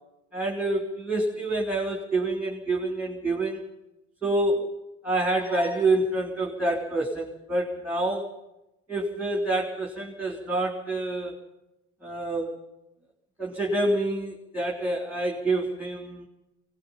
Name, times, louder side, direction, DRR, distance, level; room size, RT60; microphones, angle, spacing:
voice 1, 0.3-3.6 4.2-4.7 5.0-8.3 8.9-11.4 12.0-12.6 13.4-16.3, right 2 dB, 5° right, 0 dB, 3.7 m, -27 dB
23.5 x 19.5 x 5.7 m, 0.90 s
cardioid pair, 115°, 30 cm